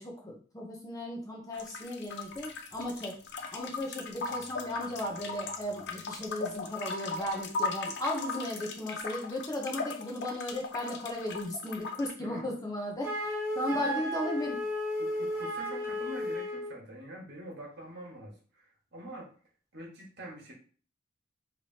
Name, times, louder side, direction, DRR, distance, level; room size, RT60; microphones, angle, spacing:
voice 1, 0.0-3.2 3.5-14.6, left 1 dB, 15° left, -1 dB, 0.7 m, -36 dB
sound 1, 1.5-12.1, left 4 dB, 55° left, 0.5 m, -38 dB
Wind instrument woodwind instrument, 13.0-16.7, equal, 10° right, 1.2 m, -34 dB
voice 2, 13.7-14.0 15.0-19.3 19.7-20.5, right 1 dB, 55° right, -1 dB, 1.4 m, -45 dB
4.6 x 3.0 x 2.8 m, 0.41 s
head